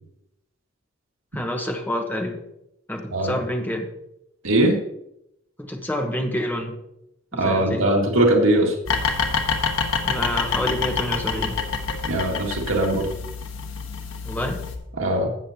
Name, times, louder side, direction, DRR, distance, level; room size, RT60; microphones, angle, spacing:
voice 1, 1.3-2.4 2.9-3.9 5.6-6.7 7.3-7.9 10.0-11.6 14.2-14.6, equal, 10° left, 3 dB, 1.3 m, -28 dB
voice 2, 4.4-4.8 7.3-8.8 12.1-13.1 15.0-15.3, right 1 dB, 85° right, 0 dB, 1.9 m, -20 dB
sound 1, 8.9-14.8, left 5 dB, 90° left, 1.3 m, -27 dB
14.0 x 8.6 x 2.9 m, 0.80 s
head